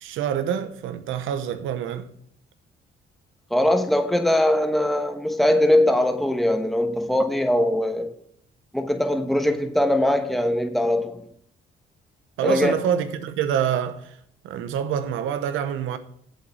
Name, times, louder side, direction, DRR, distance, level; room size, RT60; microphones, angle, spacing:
voice 1, 0.0-2.1 12.4-14.2 14.4-16.0, right 9 dB, 90° right, 0.9 m, -26 dB
voice 2, 3.5-8.1 8.7-11.2 12.4-12.7, left 1 dB, ahead, 1.1 m, -21 dB
7.7 x 7.0 x 6.3 m
cardioid pair, 90°, 20 cm